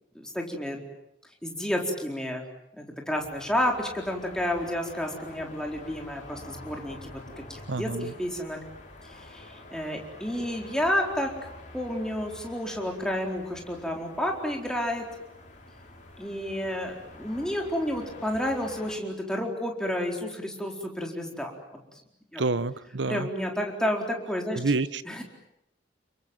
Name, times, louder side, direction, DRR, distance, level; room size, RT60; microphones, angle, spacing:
voice 1, 0.1-0.8 1.4-2.4 2.8-8.6 9.1-11.3 11.7-15.0 16.2-21.5 22.3-22.4 23.1-24.6 25.1-25.2, left 1 dB, 5° left, 4.2 m, -30 dB
sound 1, 3.1-19.0, left 2 dB, 40° left, 5.7 m, -47 dB
voice 2, 7.7-8.1 22.4-23.3 24.5-25.0, right 3 dB, 80° right, 1.0 m, -28 dB
29.0 x 24.0 x 7.7 m
head